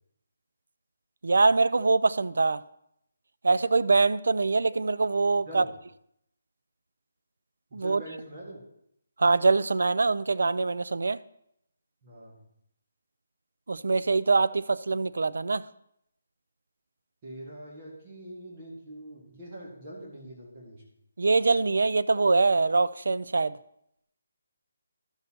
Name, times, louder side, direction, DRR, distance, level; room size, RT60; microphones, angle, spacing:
voice 1, 1.2-2.6 3.4-5.6 7.7-8.0 9.2-11.2 13.7-15.7 21.2-23.6, right 3 dB, 75° right, 0.4 m, -23 dB
voice 2, 7.7-8.6 12.0-12.4 17.2-20.8, right 1 dB, 25° right, 1.8 m, -43 dB
13.0 x 6.7 x 2.9 m
hypercardioid pair, 170°, 0 cm